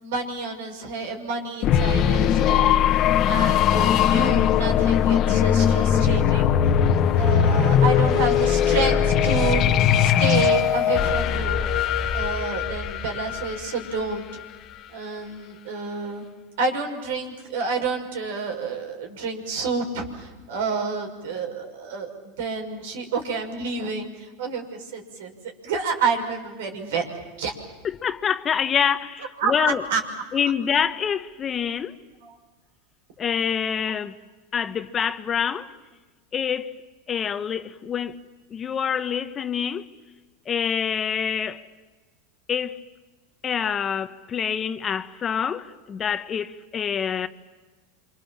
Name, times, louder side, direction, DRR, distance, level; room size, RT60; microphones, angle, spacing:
voice 1, 0.0-2.8 3.3-6.5 7.1-9.6 10.0-11.7 12.1-14.2 14.9-16.2 16.6-22.1 22.4-24.6 24.9-25.3 25.6-27.0 27.4-27.5 29.4-30.0 32.2-32.3, right 4 dB, 75° right, 6.2 m, -29 dB
sound 1, 1.6-14.3, left 9 dB, 45° left, 1.5 m, -20 dB
voice 2, 27.8-29.8 30.3-31.9 33.2-34.1 34.5-35.7 36.3-36.8 37.1-38.2 38.5-39.9 40.5-41.6 42.5-42.8 43.4-47.3, left 7 dB, 30° left, 1.2 m, -26 dB
28.5 x 26.0 x 7.4 m
hypercardioid pair, 110°, 0 cm